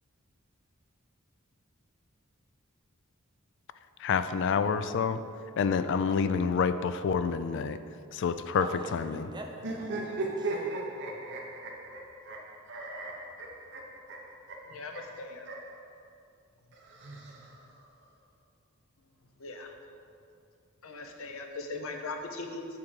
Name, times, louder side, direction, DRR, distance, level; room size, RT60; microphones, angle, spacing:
voice 1, 4.0-5.2 5.6-7.8 8.1-8.7 8.9-9.3, left 6 dB, 60° left, 11 dB, 0.3 m, -28 dB
voice 2, 8.6-10.9, right 1 dB, 20° right, 1 dB, 0.7 m, -44 dB
sound 1, 9.6-15.8 16.7-17.9, right 2 dB, 55° right, 0.9 m, -37 dB
voice 3, 14.6-15.5 19.4-19.7 20.8-22.6, left 3 dB, 80° left, 3 dB, 0.8 m, -39 dB
7.6 x 3.6 x 6.3 m, 2.5 s
head